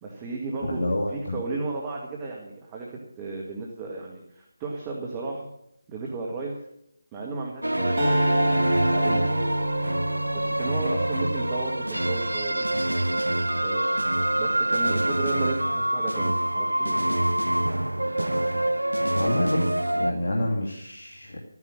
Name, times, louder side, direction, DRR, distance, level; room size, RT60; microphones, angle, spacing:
voice 1, 0.0-0.8 1.1-5.5 5.9-6.5 7.1-9.4 10.3-12.7 13.6-17.1, right 3 dB, 15° right, -1 dB, 1.8 m, -34 dB
voice 2, 0.7-1.4 19.1-21.4, left 1 dB, 50° left, -1 dB, 2.5 m, -28 dB
sound 1, 7.6-20.1, right 1 dB, 85° right, 0.6 m, -25 dB
Acoustic guitar, 8.0-11.8, right 1 dB, 40° right, 5.2 m, -28 dB
14.0 x 9.7 x 6.5 m, 0.78 s
figure-of-eight pair, 155°, 0 cm